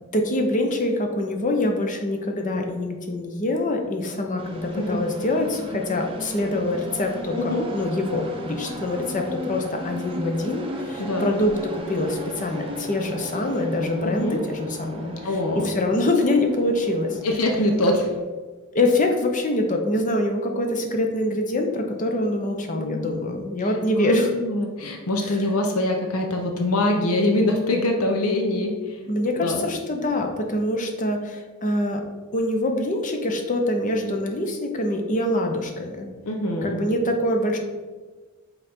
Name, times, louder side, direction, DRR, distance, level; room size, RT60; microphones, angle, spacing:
voice 1, 0.1-17.2 18.7-24.3 25.2-25.4 29.1-32.0 32.3-36.1 36.6-37.6, left 1 dB, 35° left, 3 dB, 0.7 m, -25 dB
sound 1, 4.4-18.2, equal, 25° right, 0.7 m, -36 dB
voice 2, 7.4-7.7 11.0-11.3 14.2-14.4 15.2-15.7 17.2-18.1 22.5-23.1 24.0-29.0 29.4-29.6 36.3-36.8, left 1 dB, 75° left, 2 dB, 0.7 m, -24 dB
5.6 x 3.9 x 4.3 m, 1.4 s
head